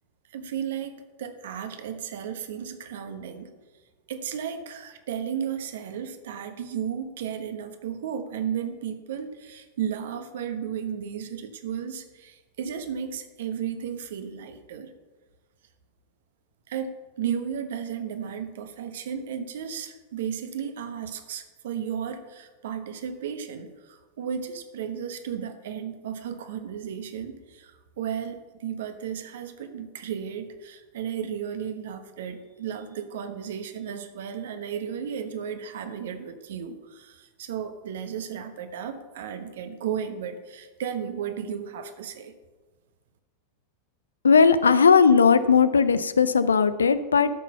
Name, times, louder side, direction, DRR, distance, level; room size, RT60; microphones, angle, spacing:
voice 1, 0.3-3.5 4.1-14.9 16.7-42.3, right 8 dB, 60° right, 8 dB, 1.1 m, -34 dB
voice 2, 44.2-47.3, left 5 dB, 70° left, 14 dB, 0.5 m, -18 dB
13.0 x 6.1 x 5.6 m, 1.3 s
figure-of-eight pair, 90°, 0 cm